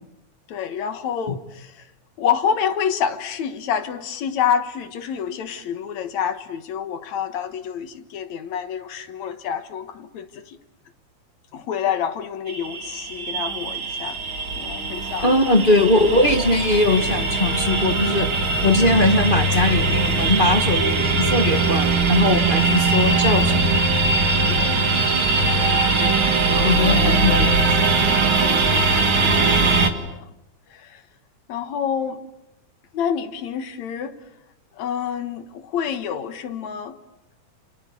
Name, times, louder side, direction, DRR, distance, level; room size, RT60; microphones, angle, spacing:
voice 1, 0.5-1.9 2.2-10.6 11.5-14.2 14.6-15.3 24.4-24.9 25.5-27.2 28.4-30.3 30.7-31.0 31.5-32.3 32.9-34.2 34.7-37.0, left 8 dB, 70° left, 2.6 m, -28 dB
sound 1, 12.5-29.9, right 3 dB, 45° right, 2.4 m, -20 dB
voice 2, 15.2-18.3 18.6-23.8 26.6-27.7, left 2 dB, 35° left, 0.8 m, -20 dB
29.0 x 28.0 x 6.8 m
omnidirectional pair, 3.5 m